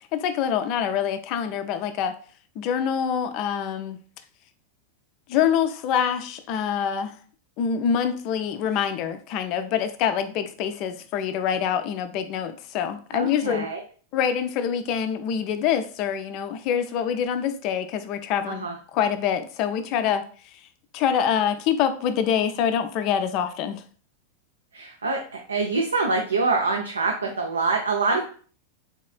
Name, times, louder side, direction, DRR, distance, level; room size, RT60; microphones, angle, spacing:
voice 1, 0.1-2.1 2.6-4.0 5.3-7.1 7.6-13.7 14.1-18.7 18.9-20.2 20.9-23.8, left 8 dB, 40° left, 9 dB, 0.4 m, -25 dB
voice 2, 13.1-13.8 18.5-18.8 24.7-28.2, right 3 dB, 75° right, 2 dB, 0.4 m, -25 dB
3.6 x 3.1 x 2.3 m, 0.43 s
figure-of-eight pair, 90°, 0 cm